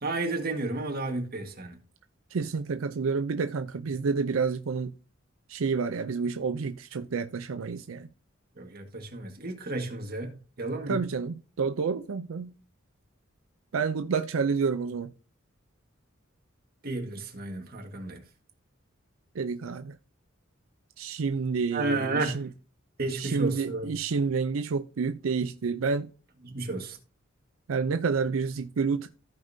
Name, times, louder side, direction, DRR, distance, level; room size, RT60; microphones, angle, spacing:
voice 1, 0.0-1.8 8.6-11.0 16.8-18.2 21.7-22.4 23.0-23.9 26.4-27.0, right 2 dB, 50° right, 1.7 m, -32 dB
voice 2, 2.3-4.9 5.5-8.1 10.9-12.5 13.7-15.1 19.3-20.0 21.0-22.5 23.1-26.1 27.7-29.1, right 5 dB, 90° right, 0.5 m, -29 dB
15.0 x 5.1 x 2.7 m
head